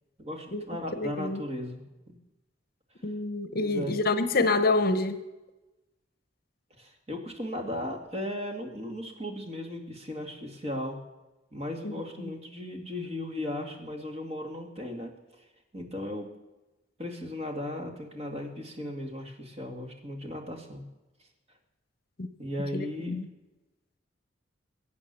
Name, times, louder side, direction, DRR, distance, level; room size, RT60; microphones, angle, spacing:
voice 1, 0.2-2.2 3.5-3.9 6.8-11.0 11.5-15.1 15.4-15.5 15.7-16.3 17.0-20.8 22.4-23.2, left 1 dB, 35° right, 2 dB, 2.3 m, -36 dB
voice 2, 0.9-1.4 3.0-5.2 11.8-11.9 22.2-22.3 22.7-23.3, left 3 dB, 55° left, 11 dB, 0.9 m, -27 dB
22.5 x 8.3 x 6.9 m, 1.1 s
head